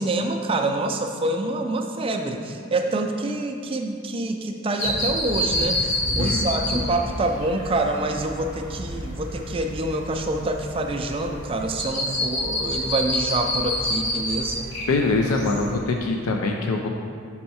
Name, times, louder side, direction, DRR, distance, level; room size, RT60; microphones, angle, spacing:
voice 1, 0.0-14.7, right 2 dB, 25° right, 4 dB, 0.4 m, -26 dB
sound 1, 4.8-15.8, left 1 dB, 60° left, 1.5 m, -28 dB
voice 2, 14.9-16.9, left 3 dB, 80° left, 2 dB, 0.4 m, -23 dB
5.6 x 5.5 x 4.2 m, 2.3 s
head